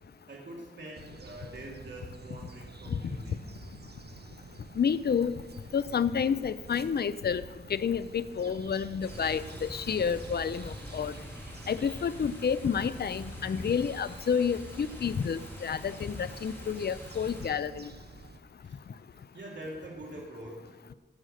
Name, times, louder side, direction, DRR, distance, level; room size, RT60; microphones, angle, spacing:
voice 1, 0.3-3.5 18.6-18.8 19.3-20.9, right 1 dB, 85° right, -2 dB, 1.8 m, -44 dB
sound 1, 0.9-18.4, right 3 dB, 65° right, 0.8 m, -50 dB
voice 2, 4.8-5.4 5.7-7.4 7.7-11.1 11.7-17.9, left 7 dB, 65° left, 15 dB, 0.4 m, -29 dB
sound 2, 9.0-17.4, equal, 10° left, 4.5 m, -45 dB
16.5 x 6.3 x 6.5 m, 1.3 s
wide cardioid pair, 75°, 18 cm